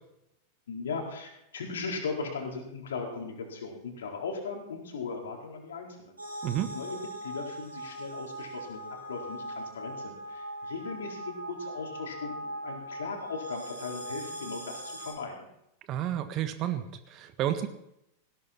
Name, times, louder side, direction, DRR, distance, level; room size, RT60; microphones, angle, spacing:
voice 1, 0.7-6.2 6.7-15.5, left 4 dB, 65° left, 1 dB, 4.3 m, -38 dB
sound 1, 6.2-15.1, right 1 dB, 80° right, 7.9 m, -40 dB
voice 2, 6.4-6.7 15.9-17.7, right 11 dB, 35° right, 10 dB, 1.5 m, -31 dB
19.0 x 17.0 x 4.4 m, 0.81 s
figure-of-eight pair, 90°, 0 cm